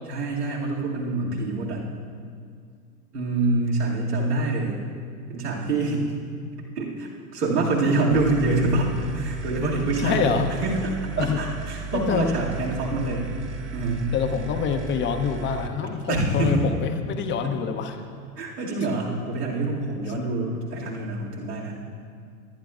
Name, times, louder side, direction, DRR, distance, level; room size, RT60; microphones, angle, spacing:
voice 1, 0.1-1.9 3.1-4.8 5.3-6.1 6.8-13.3 13.7-14.1 16.1-16.7 18.4-21.8, right 2 dB, 80° right, -5 dB, 2.4 m, -26 dB
sound 1, 8.1-15.7, right 5 dB, 25° right, 0.8 m, -35 dB
voice 2, 10.0-10.5 11.2-11.4 11.9-12.3 14.1-17.9 20.2-20.3, left 7 dB, 25° left, 6 dB, 0.7 m, -26 dB
22.0 x 10.0 x 2.4 m, 2.2 s
figure-of-eight pair, 95°, 46 cm